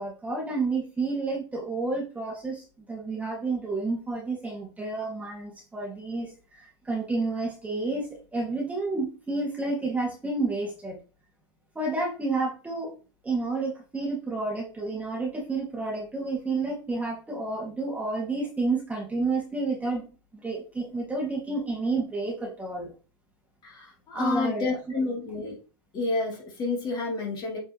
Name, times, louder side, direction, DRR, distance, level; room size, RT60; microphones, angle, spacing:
voice 1, 0.0-6.3 6.6-11.0 11.7-12.9 13.2-20.0 20.3-22.9 24.1-24.7, right 3 dB, 10° right, -2 dB, 2.3 m, -30 dB
voice 2, 23.6-25.6 25.9-27.6, left 3 dB, 35° left, -2 dB, 3.4 m, -29 dB
8.0 x 4.8 x 3.2 m, 0.34 s
hypercardioid pair, 120°, 14 cm